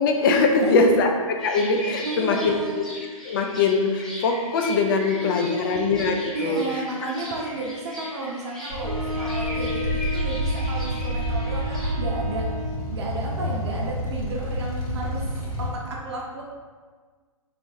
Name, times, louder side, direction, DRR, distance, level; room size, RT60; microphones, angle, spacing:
voice 1, 0.0-2.6 3.2-6.6, left 3 dB, 40° left, 3 dB, 0.5 m, -22 dB
sound 1, 1.4-11.9, left 1 dB, 5° left, 0.7 m, -39 dB
voice 2, 2.0-2.8 5.0-5.8 6.3-12.4 12.9-15.2 15.6-16.4, right 2 dB, 50° right, -2 dB, 0.7 m, -32 dB
sound 2, 8.7-15.7, equal, 80° left, 1.4 m, -28 dB
Wind instrument woodwind instrument, 8.8-12.9, equal, 20° left, 1.1 m, -34 dB
4.5 x 3.2 x 2.6 m, 1.5 s
figure-of-eight pair, 115°, 18 cm